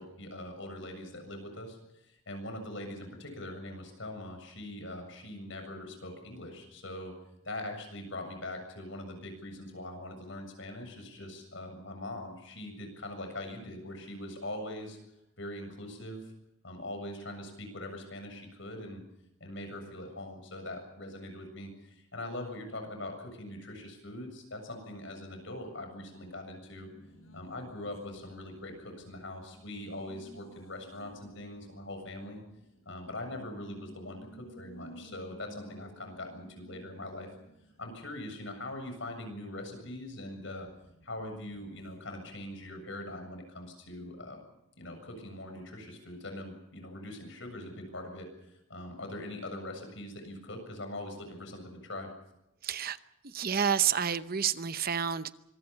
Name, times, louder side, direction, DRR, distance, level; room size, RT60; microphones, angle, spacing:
voice 1, 0.0-7.1 7.4-15.0 15.4-16.3 16.6-19.0 19.4-26.9 27.3-32.4 32.9-37.3 37.8-40.7 41.0-44.4 44.8-52.1, left 1 dB, 65° left, 6 dB, 7.4 m, -42 dB
Race car auto racing, 26.6-42.8, equal, 85° left, 6.8 m, -56 dB
voice 2, 52.6-53.0 53.2-55.3, right 8 dB, 45° right, 12 dB, 0.8 m, -29 dB
25.5 x 23.0 x 5.7 m, 0.86 s
head